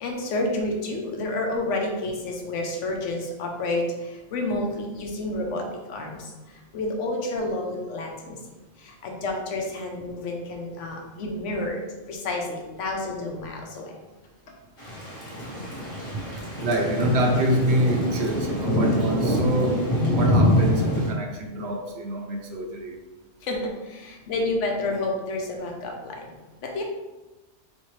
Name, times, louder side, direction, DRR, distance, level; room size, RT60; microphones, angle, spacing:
voice 1, 0.0-8.4 8.8-11.8 12.1-13.9 23.4-26.8, left 2 dB, 75° left, 1 dB, 1.1 m, -30 dB
Thunder / Rain, 14.8-21.1, left 1 dB, 30° left, 0.8 m, -25 dB
voice 2, 16.6-23.0, right 1 dB, 65° right, 3 dB, 0.8 m, -26 dB
4.2 x 3.2 x 3.1 m, 1.1 s
omnidirectional pair, 1.3 m